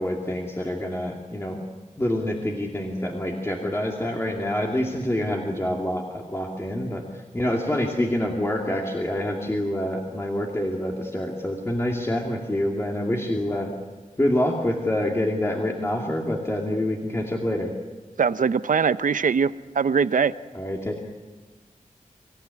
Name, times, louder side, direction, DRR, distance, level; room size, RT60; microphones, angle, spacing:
voice 1, 0.0-1.6 2.0-13.7 14.2-17.7 20.5-20.9, left 1 dB, 20° left, 0 dB, 2.5 m, -26 dB
voice 2, 18.2-20.3, right 6 dB, 75° right, 14 dB, 0.7 m, -22 dB
26.0 x 15.5 x 9.7 m, 1.3 s
wide cardioid pair, 110°, 14 cm